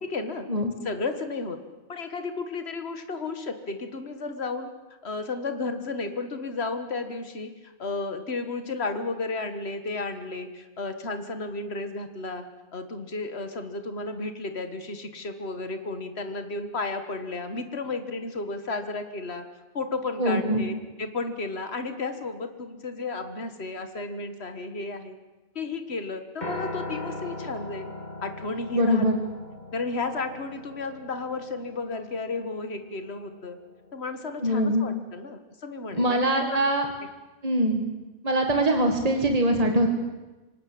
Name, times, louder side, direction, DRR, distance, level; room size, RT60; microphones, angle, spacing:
voice 1, 0.0-0.5 0.8-1.6 1.9-4.7 5.0-12.4 12.7-19.5 19.7-25.2 25.6-27.9 28.2-29.1 29.7-33.6 33.9-36.6, left 3 dB, 75° left, 8 dB, 2.0 m, -33 dB
voice 2, 20.2-20.6 28.7-29.1 34.4-34.9 35.9-36.9 37.4-37.8 38.2-39.9, right 1 dB, 35° right, 3 dB, 2.3 m, -23 dB
Piano, 26.4-34.7, left 2 dB, 45° left, 2.3 m, -40 dB
25.5 x 18.5 x 8.7 m, 1.1 s
omnidirectional pair, 1.1 m